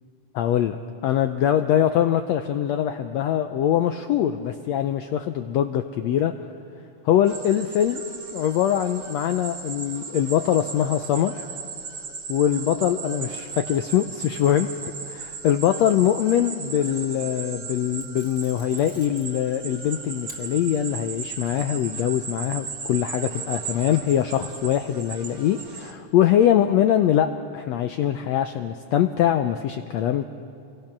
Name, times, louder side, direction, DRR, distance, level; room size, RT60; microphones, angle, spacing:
voice 1, 0.3-6.3 7.0-8.0 8.3-11.4 12.3-30.2, left 10 dB, 90° left, 8 dB, 1.5 m, -23 dB
sound 1, 7.3-25.9, right 5 dB, 45° right, 2.3 m, -36 dB
sound 2, 16.8-17.3 17.9-19.8 20.3-20.4 20.9-21.9, left 3 dB, 35° left, 2.7 m, -51 dB
29.5 x 24.5 x 6.0 m, 2.7 s
omnidirectional pair, 3.9 m